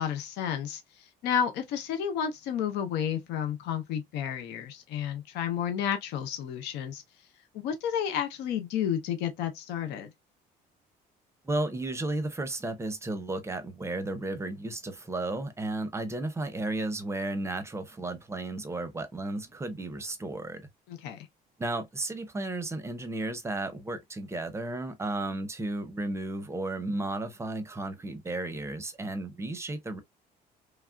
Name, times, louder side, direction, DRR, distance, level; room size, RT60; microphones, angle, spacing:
voice 1, 0.0-7.0 7.5-10.1 20.9-21.2, left 9 dB, 90° left, 0.7 m, -31 dB
voice 2, 11.4-20.6 21.6-30.0, right 2 dB, 15° right, 0.6 m, -33 dB
3.2 x 2.3 x 2.3 m
cardioid pair, 110°, 17 cm